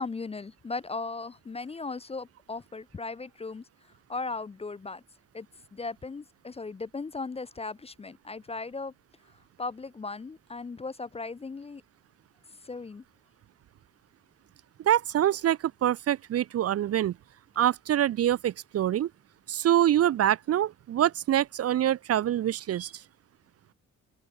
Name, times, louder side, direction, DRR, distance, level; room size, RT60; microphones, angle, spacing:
voice 1, 0.0-3.7 4.1-5.0 5.3-5.5 5.7-8.9 9.6-11.8 12.6-13.0, left 3 dB, 20° left, 0.4 m, -37 dB
voice 2, 14.9-17.1 17.6-19.1 19.5-22.9, right 11 dB, 50° right, 0.4 m, -25 dB
cardioid pair, 105°, 31 cm